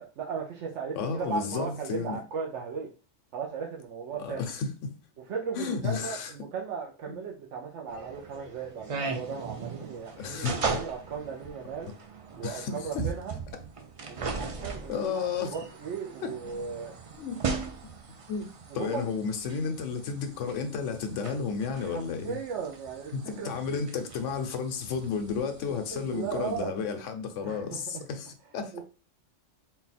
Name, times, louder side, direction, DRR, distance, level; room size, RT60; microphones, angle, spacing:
voice 1, 0.0-2.9 3.3-4.4 5.2-11.9 12.4-13.4 14.1-17.0 18.7-19.1 21.7-23.8 25.7-26.8 27.4-28.0 28.7-28.8, right 6 dB, 75° right, 0.9 m, -37 dB
voice 2, 0.9-2.2 4.2-4.9 5.5-6.3 7.1-7.2 10.2-10.8 12.4-13.0 14.9-15.5 16.2-16.3 17.2-17.4 18.3-18.5 18.7-22.4 23.1-28.7, left 6 dB, 85° left, 1.0 m, -32 dB
sound 1, 7.9-26.6, right 4 dB, 50° right, 0.4 m, -39 dB
4.1 x 2.3 x 4.1 m
omnidirectional pair, 1.2 m